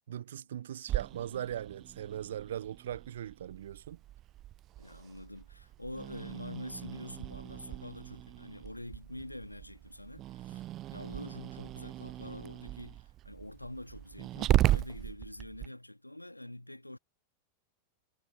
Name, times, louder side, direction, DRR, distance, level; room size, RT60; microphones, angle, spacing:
voice 1, 0.1-4.0, right 10 dB, 60° right, 1.0 m, -39 dB
Growling, 0.9-15.7, right 14 dB, 35° right, 0.3 m, -37 dB
voice 2, 4.8-17.0, left 1 dB, 85° left, 2.0 m, -46 dB
figure-of-eight pair, 90°, 0 cm